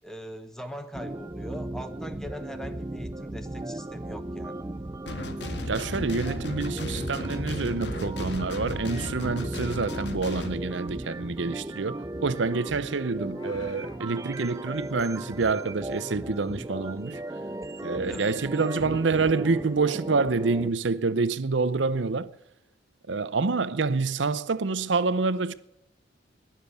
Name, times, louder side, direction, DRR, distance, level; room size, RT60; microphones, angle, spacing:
voice 1, 0.0-4.6 18.1-18.4, equal, 5° left, 1.1 m, -41 dB
sound 1, 0.9-20.7, right 1 dB, 15° right, 0.5 m, -36 dB
sound 2, 5.1-10.6, left 1 dB, 65° left, 1.7 m, -35 dB
voice 2, 5.7-17.2 17.8-22.3 23.1-25.5, right 4 dB, 80° right, 0.7 m, -27 dB
Meow, 13.2-14.0, left 4 dB, 20° left, 0.9 m, -49 dB
21.0 x 7.4 x 8.2 m
head